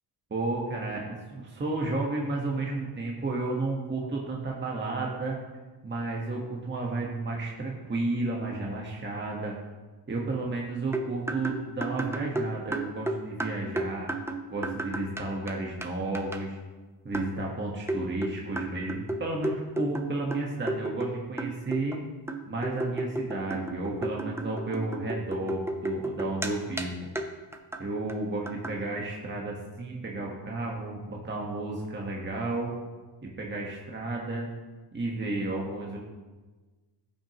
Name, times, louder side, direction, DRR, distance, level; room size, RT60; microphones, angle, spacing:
voice 1, 0.3-5.4 5.8-9.5 10.1-14.1 14.5-16.6 17.0-22.0 22.5-26.9 27.8-32.7 33.4-34.5 34.9-36.0, right 2 dB, 25° right, -2 dB, 1.4 m, -32 dB
sound 1, 10.9-15.5 15.8-15.9 16.1-16.4 17.1-17.4 17.9-21.1 21.4-22.0 22.3-26.5 26.8-26.9 27.2-27.3 27.5-27.8 28.1-28.2 28.5-28.7, right 2 dB, 5° right, 0.7 m, -33 dB
15.0 x 6.2 x 3.1 m, 1.3 s
cardioid pair, 110°, 42 cm